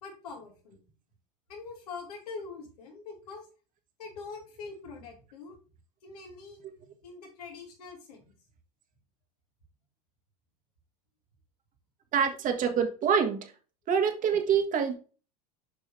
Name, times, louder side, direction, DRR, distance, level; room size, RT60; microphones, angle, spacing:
voice 1, 0.0-0.8 1.5-3.4 4.0-5.6 6.0-6.6 7.0-8.3, left 4 dB, 80° left, 3.2 m, -43 dB
voice 2, 12.1-13.5 13.9-15.0, right 7 dB, 40° right, 1.6 m, -26 dB
7.3 x 5.5 x 3.3 m
hypercardioid pair, 90°, 20 cm